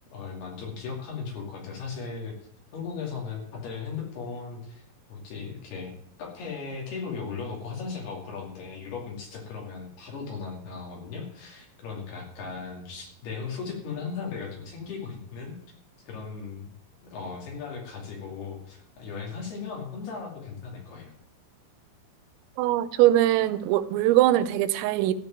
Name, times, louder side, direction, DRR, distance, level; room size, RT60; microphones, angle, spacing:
voice 1, 0.1-2.3 2.7-5.9 6.2-15.5 16.1-16.7 17.0-21.1, left 5 dB, 55° left, 4.3 m, -37 dB
voice 2, 22.6-25.1, right 14 dB, 85° right, 3.4 m, -21 dB
14.0 x 5.3 x 9.1 m
omnidirectional pair, 5.8 m